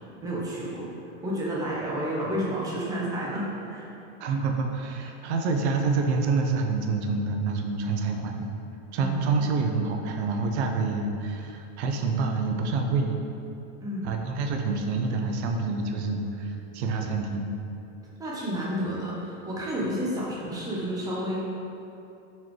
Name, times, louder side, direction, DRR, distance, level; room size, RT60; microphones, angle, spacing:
voice 1, 0.2-0.8 1.2-3.9 9.0-9.5 13.8-14.2 18.2-21.4, equal, 10° right, -6 dB, 0.5 m, -31 dB
voice 2, 4.2-8.5 8.9-13.2 14.0-17.5, right 4 dB, 60° right, 3 dB, 0.6 m, -27 dB
4.1 x 3.1 x 3.1 m, 2.8 s
supercardioid pair, 135°, 38 cm